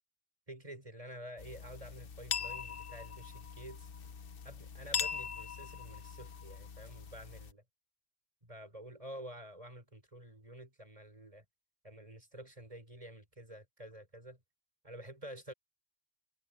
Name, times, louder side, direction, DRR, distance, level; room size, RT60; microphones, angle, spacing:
voice 1, 0.5-3.9 4.4-7.6 8.4-11.5 11.8-14.4 14.8-15.5, right 1 dB, 35° right, 5.4 m, -49 dB
sound 1, 1.4-7.5, left 6 dB, 65° left, 1.1 m, -41 dB
omnidirectional pair, 1.0 m